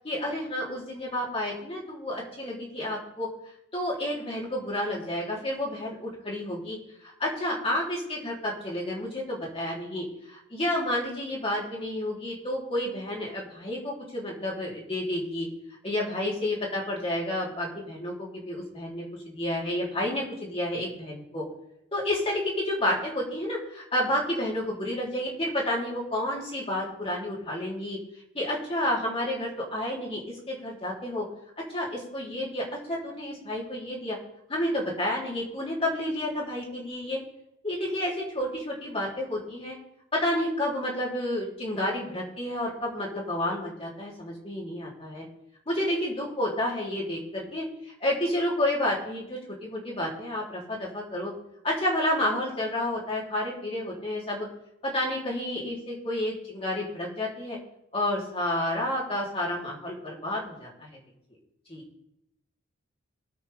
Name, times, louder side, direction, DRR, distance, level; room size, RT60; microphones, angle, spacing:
voice 1, 0.0-3.3 3.7-6.8 7.0-15.5 15.8-21.4 21.9-28.0 28.3-30.2 30.5-31.2 31.7-34.2 34.5-37.2 37.6-39.8 40.1-45.2 45.7-51.3 51.6-54.5 54.8-57.6 57.9-61.0 61.7-61.8, left 1 dB, 30° left, -4 dB, 3.3 m, -30 dB
21.0 x 8.1 x 3.5 m, 0.80 s
head